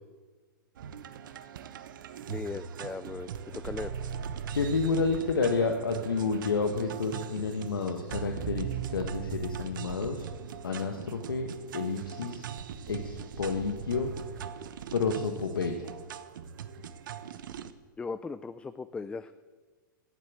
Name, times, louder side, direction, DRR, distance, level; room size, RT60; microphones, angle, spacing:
sound 1, 0.8-17.7, right 8 dB, 70° right, 0.9 m, -40 dB
voice 1, 2.3-3.3 3.6-3.9 18.0-19.3, left 4 dB, 10° left, 13 dB, 0.4 m, -37 dB
voice 2, 4.5-10.3 10.6-11.5 11.7-12.5 12.9-14.1 14.9-16.0, left 4 dB, 90° left, 4 dB, 1.3 m, -30 dB
14.5 x 7.9 x 8.4 m, 1.4 s
hypercardioid pair, 120°, 11 cm